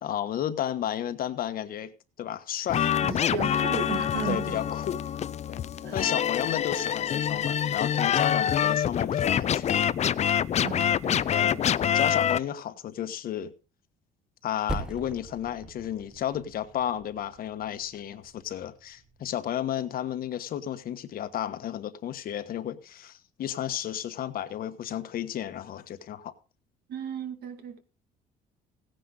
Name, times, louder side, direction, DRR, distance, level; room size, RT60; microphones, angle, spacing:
voice 1, 0.0-3.3 4.2-5.0 5.5-5.6 5.9-9.9 11.3-13.5 14.4-26.3, left 10 dB, 60° left, 1.3 m, -33 dB
sound 1, 2.7-12.4, left 9 dB, 40° left, 0.5 m, -26 dB
voice 2, 3.0-4.6 5.8-6.0 10.6-11.6 26.9-27.8, right 8 dB, 70° right, 2.3 m, -35 dB
Percussion, 14.7-19.5, right 1 dB, 5° right, 1.2 m, -41 dB
16.5 x 10.0 x 3.9 m
cardioid pair, 110°, 17 cm